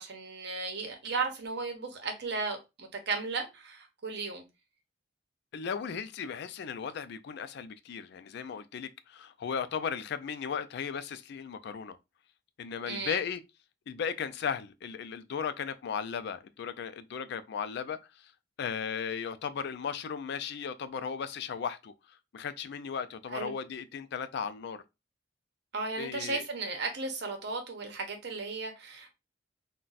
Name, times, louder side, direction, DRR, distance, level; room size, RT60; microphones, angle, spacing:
voice 1, 0.0-4.4 12.9-13.2 23.3-23.5 25.7-29.2, right 4 dB, 60° right, 0.8 m, -35 dB
voice 2, 5.5-12.0 12.6-13.4 13.9-18.3 18.6-21.9 22.3-24.8 26.0-26.5, left 7 dB, 60° left, 0.3 m, -36 dB
2.4 x 2.2 x 3.9 m
head